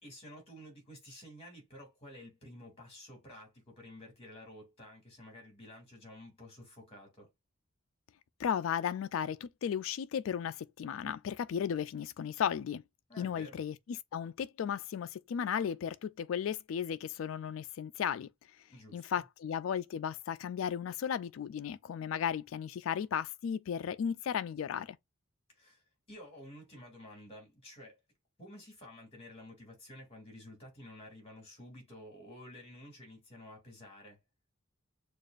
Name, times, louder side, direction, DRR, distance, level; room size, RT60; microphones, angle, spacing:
voice 1, 0.0-7.3 13.1-13.6 18.7-19.2 25.5-28.0 28.4-34.2, left 1 dB, 30° left, 2.6 m, -51 dB
voice 2, 8.4-12.8 13.2-13.8 14.1-18.3 18.9-25.0, left 8 dB, 75° left, 0.3 m, -35 dB
6.5 x 2.4 x 2.4 m
head